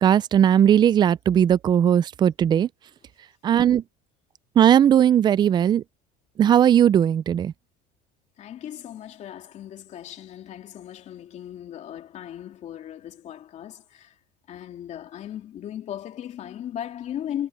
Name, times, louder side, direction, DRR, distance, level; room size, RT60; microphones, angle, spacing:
voice 1, 0.0-2.7 3.4-3.8 4.6-5.8 6.4-7.5, right 9 dB, 25° right, 0.4 m, -18 dB
voice 2, 8.4-14.2 14.5-17.5, left 10 dB, 40° left, 3.0 m, -37 dB
cardioid pair, 140°, 17 cm